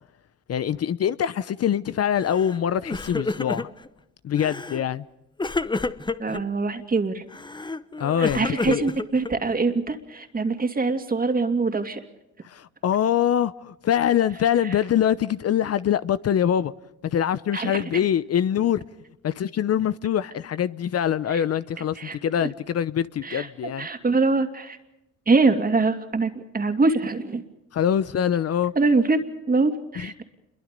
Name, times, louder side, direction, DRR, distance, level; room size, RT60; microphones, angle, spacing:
voice 1, 0.5-3.7 4.2-5.0 8.0-8.9 12.4-16.7 17.0-18.8 19.2-23.9 27.7-28.7 30.0-30.1, left 9 dB, 55° left, 0.8 m, -24 dB
Crying sobbing, 2.2-2.6 2.8-3.9 4.4-4.8 5.4-6.4 7.3-9.6, left 3 dB, 15° left, 1.0 m, -29 dB
voice 2, 6.2-7.2 8.2-12.0 17.5-17.8 21.3-21.4 21.9-22.5 23.2-24.8 25.3-27.4 28.7-30.2, right 3 dB, 30° right, 2.7 m, -24 dB
28.0 x 22.5 x 5.3 m
cardioid pair, 90°, 30 cm